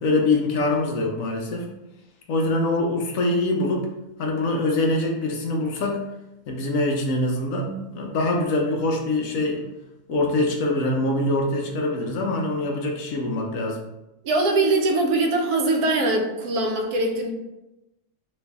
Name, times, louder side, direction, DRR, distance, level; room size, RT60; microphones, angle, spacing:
voice 1, 0.0-1.7 2.3-3.9 4.2-6.0 6.5-9.6 10.1-13.8, left 2 dB, 70° left, 0 dB, 0.9 m, -24 dB
voice 2, 14.2-17.3, right 2 dB, 85° right, 2 dB, 1.1 m, -22 dB
3.0 x 2.6 x 3.4 m, 0.94 s
omnidirectional pair, 1.6 m